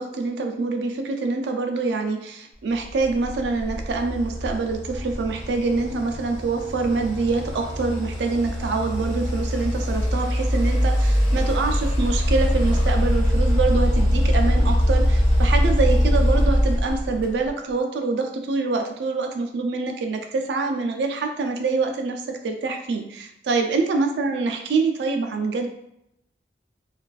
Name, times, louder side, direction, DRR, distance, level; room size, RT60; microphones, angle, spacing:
voice 1, 0.0-25.7, right 3 dB, 75° right, 4 dB, 0.4 m, -25 dB
sound 1, 3.0-17.5, equal, 15° left, 1.2 m, -22 dB
2.4 x 2.3 x 2.3 m, 0.80 s
head